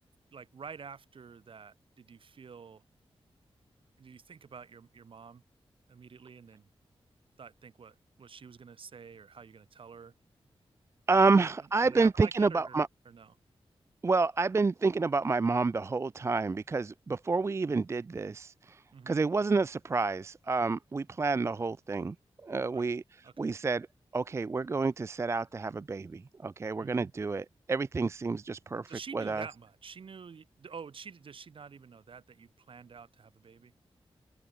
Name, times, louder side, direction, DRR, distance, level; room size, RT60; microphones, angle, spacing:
voice 1, 0.3-2.8 4.0-5.4 5.9-6.7 7.4-10.1 11.1-11.5 11.8-12.8 13.1-13.4 18.9-19.2 22.7-22.9 23.2-23.5 26.8-27.1 28.9-33.7, right 6 dB, 60° right, 2.2 m, -48 dB
voice 2, 11.1-12.9 14.0-22.2 22.4-23.0 23.4-23.9 24.1-29.4, right 3 dB, 25° right, 0.4 m, -29 dB
wide cardioid pair, 170°, 10 cm